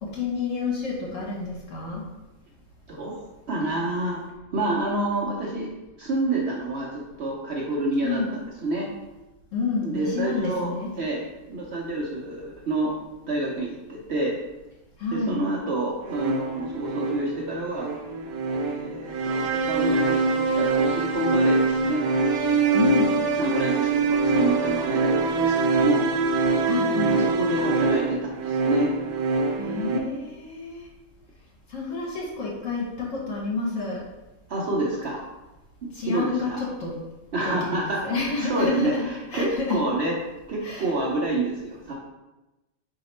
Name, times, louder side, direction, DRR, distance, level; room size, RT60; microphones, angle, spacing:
voice 1, 0.0-2.0 8.0-8.3 9.5-10.9 15.0-15.4 22.7-23.1 26.6-27.1 29.6-30.9 31.7-34.0 35.9-36.9 37.6-37.7 38.0-39.0 39.3-39.8 40.6-40.9, left 4 dB, 60° left, -4 dB, 1.4 m, -29 dB
voice 2, 2.9-4.2 4.5-5.7 6.0-8.9 9.8-11.2 11.5-13.0 13.3-14.4 15.1-17.9 18.6-22.0 22.9-26.0 26.9-28.9 34.5-35.2 35.8-36.6 37.3-38.1 38.4-40.2 40.5-41.9, right 2 dB, 60° right, -3 dB, 0.8 m, -28 dB
sound 1, 16.1-30.0, right 3 dB, 80° right, 1.1 m, -24 dB
4.0 x 2.8 x 4.1 m, 1.0 s
omnidirectional pair, 1.6 m